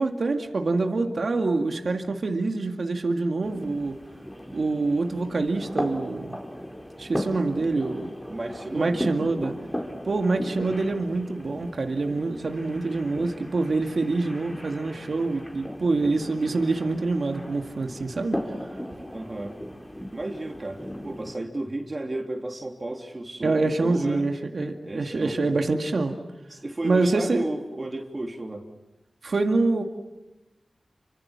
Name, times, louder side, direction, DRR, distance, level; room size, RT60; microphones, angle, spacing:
voice 1, 0.0-4.0 4.5-6.4 7.0-8.1 8.7-9.5 10.0-18.7 23.4-26.1 26.8-27.4 29.2-29.8, right 3 dB, 70° right, 4 dB, 2.1 m, -26 dB
sound 1, 3.4-21.4, equal, 10° left, 4.5 m, -37 dB
voice 2, 8.3-9.0 19.1-19.6 20.1-24.3 24.9-25.5 26.5-28.6, right 2 dB, 40° right, 2 dB, 3.3 m, -33 dB
28.5 x 25.5 x 7.4 m, 1.0 s
cardioid pair, 45°, 0 cm